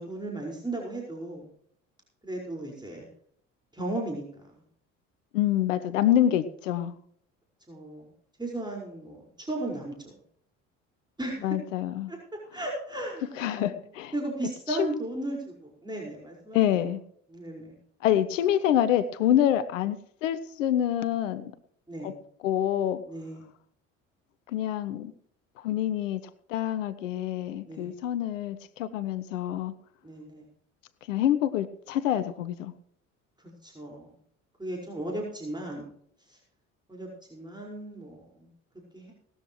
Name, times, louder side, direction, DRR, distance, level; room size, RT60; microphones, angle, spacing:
voice 1, 0.0-1.5 2.2-3.1 3.7-4.5 7.7-8.1 8.4-10.1 11.2-11.6 12.1-12.2 12.5-13.8 14.1-16.6 17.3-17.7 21.9-22.1 23.1-23.4 27.7-27.9 30.0-30.4 33.4-34.1 34.6-35.9 36.3-36.4 36.9-38.5 38.9-39.1, right 2 dB, 10° right, -1 dB, 5.1 m, -36 dB
voice 2, 5.3-6.9 11.4-12.1 13.4-14.1 14.8-14.9 16.5-17.0 18.0-21.5 22.0-22.2 22.4-23.0 24.5-25.1 25.6-26.2 26.5-29.7 31.1-32.7, left 11 dB, 80° left, 14 dB, 1.0 m, -26 dB
19.0 x 13.0 x 3.1 m, 0.65 s
figure-of-eight pair, 55°, 38 cm